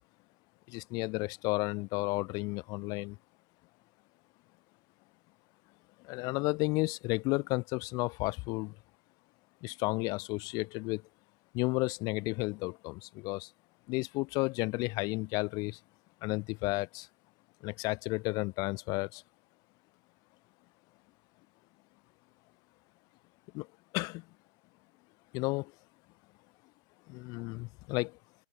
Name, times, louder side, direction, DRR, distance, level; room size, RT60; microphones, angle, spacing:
voice 1, 0.7-3.2 6.0-8.7 9.6-11.0 11.5-13.5 13.9-15.8 16.2-17.1 17.6-19.2 23.5-23.7 23.9-24.2 25.3-25.7 27.1-28.2, left 25 dB, 10° left, 6.7 m, -32 dB
hypercardioid pair, 175°, 38 cm